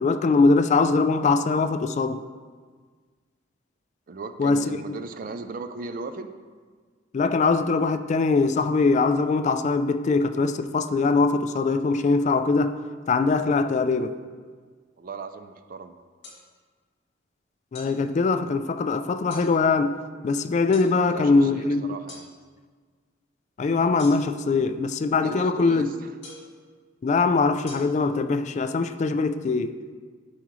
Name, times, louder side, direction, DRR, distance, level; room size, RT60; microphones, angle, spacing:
voice 1, 0.0-2.2 4.4-4.8 7.1-12.8 13.1-14.1 17.7-20.0 20.2-21.9 23.6-25.9 27.0-29.9, left 4 dB, 40° left, 0.3 m, -22 dB
voice 2, 4.1-6.3 15.0-16.0 20.9-22.3 25.2-26.1, right 3 dB, 50° right, 0.4 m, -37 dB
sound 1, 16.2-16.4 17.7-17.9 19.3-19.5 20.7-20.9 22.1-22.3 24.0-24.4 26.2-26.5 27.7-27.8, left 3 dB, 65° left, 2.0 m, -43 dB
12.0 x 4.7 x 3.1 m
head